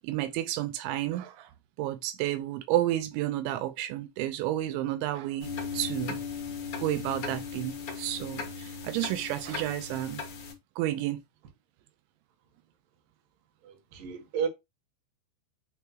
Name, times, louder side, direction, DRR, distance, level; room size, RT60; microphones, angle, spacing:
voice 1, 0.0-1.5 1.8-6.2 6.8-10.2 10.8-11.2, right 14 dB, 85° right, 3.0 m, -31 dB
sound 1, 5.4-10.5, left 5 dB, 85° left, 1.2 m, -37 dB
voice 2, 13.6-14.5, right 7 dB, 60° right, 2.5 m, -32 dB
9.4 x 3.5 x 2.9 m
omnidirectional pair, 5.3 m